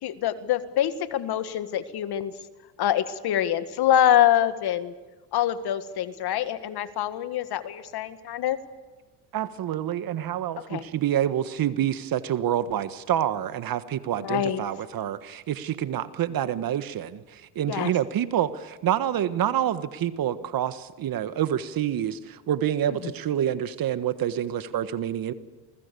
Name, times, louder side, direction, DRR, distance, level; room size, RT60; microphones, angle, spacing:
voice 1, 0.0-2.3 2.8-4.9 5.3-8.6 10.7-10.8 14.2-14.6 17.7-17.9, left 11 dB, 55° left, 11 dB, 1.9 m, -25 dB
voice 2, 9.3-25.3, right 10 dB, 45° right, 12 dB, 1.6 m, -27 dB
28.5 x 20.5 x 7.0 m, 1.2 s
supercardioid pair, 90°, 47 cm